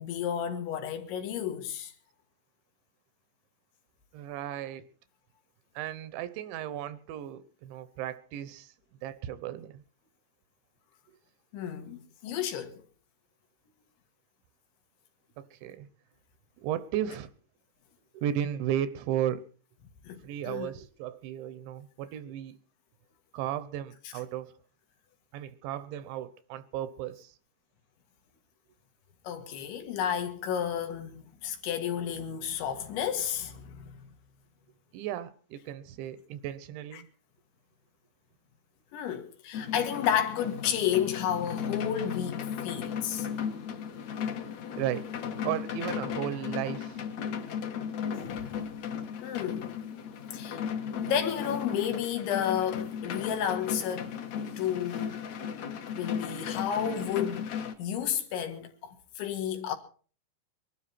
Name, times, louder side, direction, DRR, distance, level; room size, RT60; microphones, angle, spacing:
voice 1, 0.0-1.9 11.5-12.8 20.0-20.7 29.3-34.0 36.9-37.0 38.9-43.3 48.2-48.6 49.2-49.7 50.3-50.6 51.0-54.1 54.6-55.2 55.9-57.5 57.8-59.8, left 9 dB, 90° left, 4.2 m, -32 dB
voice 2, 4.1-4.8 5.7-8.7 9.0-9.8 15.4-15.9 16.6-17.3 18.1-19.4 20.2-22.6 23.3-24.5 25.3-27.3 34.9-37.1 44.8-45.0 45.4-47.0 50.9-51.0, right 11 dB, 90° right, 3.3 m, -35 dB
sound 1, 39.5-57.7, left 7 dB, 60° left, 1.9 m, -35 dB
23.5 x 12.0 x 4.3 m
omnidirectional pair, 5.1 m